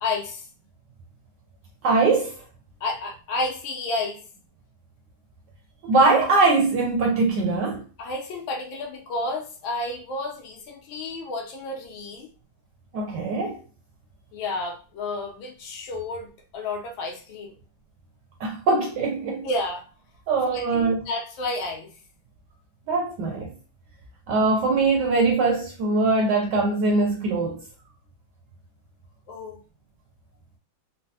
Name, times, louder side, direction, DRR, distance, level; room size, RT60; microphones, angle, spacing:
voice 1, 0.0-0.5 2.8-4.2 8.0-12.3 14.3-17.5 19.4-19.8 20.5-21.9 29.3-29.6, left 2 dB, 75° left, 1.5 m, -31 dB
voice 2, 1.8-2.4 5.8-7.8 12.9-13.6 18.4-19.5 20.3-21.1 22.9-23.6 24.3-27.6, right 3 dB, 75° right, 1.0 m, -22 dB
4.0 x 2.1 x 2.7 m
omnidirectional pair, 2.3 m